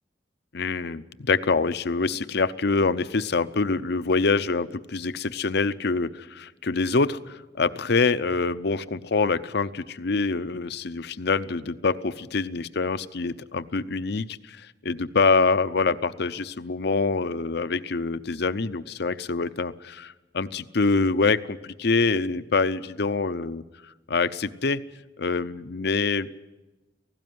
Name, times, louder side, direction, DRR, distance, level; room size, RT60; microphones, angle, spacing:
voice 1, 0.5-23.6 24.1-24.8 25.2-26.5, left 4 dB, 60° left, 13 dB, 0.7 m, -25 dB
18.0 x 16.0 x 9.4 m, 1.1 s
head